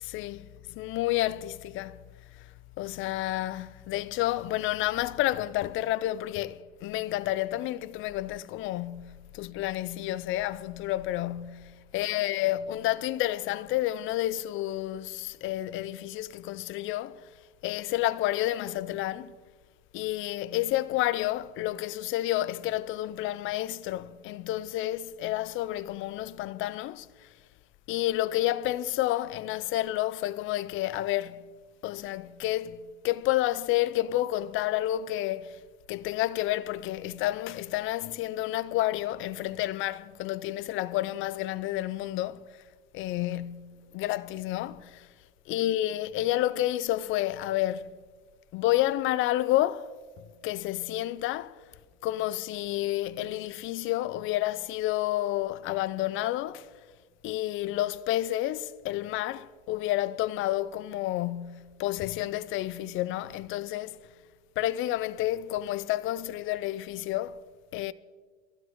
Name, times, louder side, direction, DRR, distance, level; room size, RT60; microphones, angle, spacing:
voice 1, 0.1-2.0 2.8-17.2 17.6-19.3 19.9-27.3 27.9-31.5 31.8-35.6 35.9-42.4 42.9-45.1 45.5-47.9 48.5-49.9 50.4-51.6 52.0-56.7 57.2-64.0 64.6-67.4 67.7-67.9, left 15 dB, 40° left, 0.6 m, -30 dB
23.5 x 15.5 x 3.1 m
hypercardioid pair, 105°, 33 cm